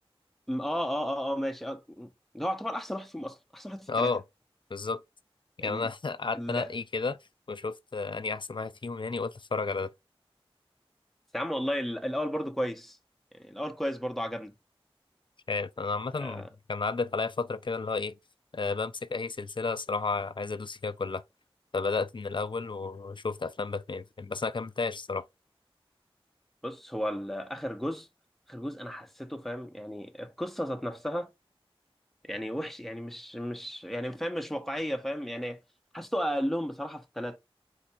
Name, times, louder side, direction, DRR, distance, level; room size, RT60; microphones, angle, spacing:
voice 1, 0.5-4.1 5.6-5.9 6.3-6.7 11.3-13.0 13.4-14.5 16.1-16.5 26.6-28.1 28.5-31.3 32.2-35.6 35.9-37.4, equal, ahead, 0.9 m, -34 dB
voice 2, 3.9-4.2 4.7-5.0 5.6-7.2 7.5-9.9 15.5-18.2 18.5-21.2 21.7-25.2, left 4 dB, 55° left, 0.4 m, -32 dB
4.6 x 2.5 x 4.2 m
wide cardioid pair, 45°, 10 cm